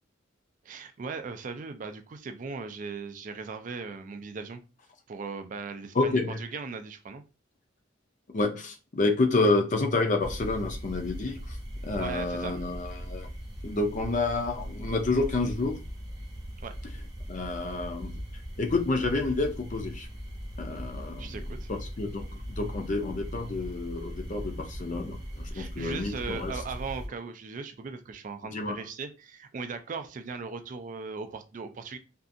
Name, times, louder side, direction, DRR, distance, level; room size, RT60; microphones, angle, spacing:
voice 1, 0.6-4.6 5.1-7.2 12.0-12.5 16.6-16.7 21.2-21.7 25.5-32.0, right 4 dB, 40° right, 7 dB, 0.3 m, -38 dB
voice 2, 5.9-6.4 8.3-11.6 11.8-13.3 13.6-15.8 17.3-18.2 18.6-20.1 20.6-21.4 21.7-26.6 28.5-28.8, left 3 dB, 40° left, 4 dB, 0.5 m, -29 dB
sound 1, 10.2-27.1, equal, 20° right, 0.8 m, -39 dB
2.6 x 2.4 x 2.5 m, 0.31 s
head